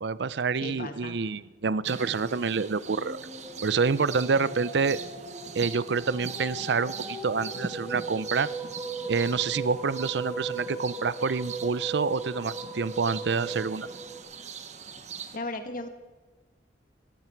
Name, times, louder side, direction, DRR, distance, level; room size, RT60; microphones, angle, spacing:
voice 1, 0.0-3.2 3.6-5.0 5.5-8.5 9.1-13.9, right 5 dB, 75° right, 18 dB, 0.5 m, -27 dB
voice 2, 0.6-1.2 4.4-4.5 15.3-15.9, left 2 dB, 50° left, 7 dB, 1.7 m, -36 dB
sound 1, 1.8-15.4, right 5 dB, 40° right, 1.1 m, -42 dB
sound 2, 2.8-14.2, right 3 dB, 15° right, 5.3 m, -38 dB
17.5 x 15.0 x 4.6 m, 1.3 s
head